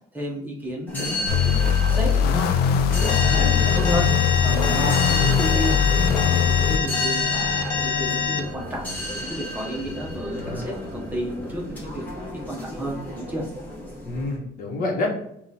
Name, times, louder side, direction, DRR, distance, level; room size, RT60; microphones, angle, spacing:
voice 1, 0.1-2.5 3.0-4.1 4.4-8.8 9.2-13.4, equal, 10° right, -2 dB, 0.8 m, -32 dB
sound 1, 0.9-14.4, left 1 dB, 10° left, 1.0 m, -33 dB
sound 2, 1.3-6.8, left 7 dB, 85° left, 0.4 m, -21 dB
voice 2, 3.1-3.8 10.3-10.7 14.0-15.1, left 2 dB, 60° left, 1 dB, 1.0 m, -29 dB
Alarm, 3.1-8.4, left 6 dB, 30° left, 0.6 m, -25 dB
6.8 x 2.4 x 2.8 m, 0.76 s
cardioid pair, 175°, 16 cm